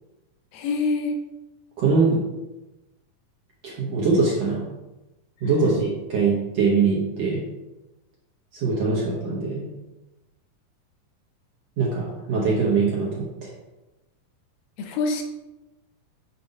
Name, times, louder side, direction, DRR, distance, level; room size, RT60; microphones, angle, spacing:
voice 1, 0.5-1.1 5.4-5.7 14.8-15.2, left 3 dB, 75° left, 3 dB, 2.2 m, -26 dB
voice 2, 1.8-2.2 3.6-4.6 5.4-7.4 8.5-9.7 11.8-13.5, right 4 dB, 65° right, -5 dB, 1.7 m, -22 dB
6.9 x 2.6 x 5.3 m, 1.0 s
omnidirectional pair, 4.2 m